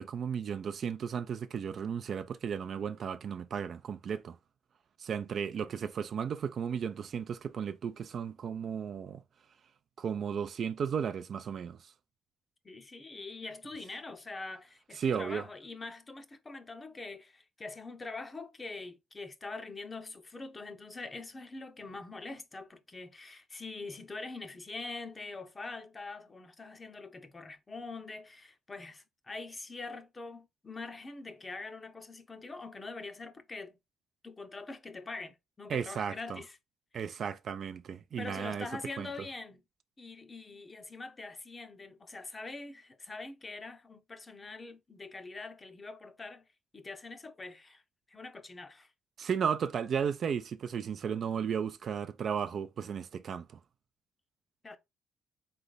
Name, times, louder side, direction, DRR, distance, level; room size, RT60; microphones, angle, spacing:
voice 1, 0.0-4.4 5.0-9.2 10.0-11.8 15.0-15.5 35.7-36.4 36.9-38.7 39.0-39.1 49.2-53.6, right 7 dB, 50° right, 0.4 m, -34 dB
voice 2, 12.6-33.8 34.2-36.6 38.2-39.6 40.0-46.5 46.7-47.8 48.1-48.9 54.6-54.8, left 3 dB, 25° left, 0.7 m, -44 dB
4.0 x 3.3 x 3.9 m
cardioid pair, 120°, 0 cm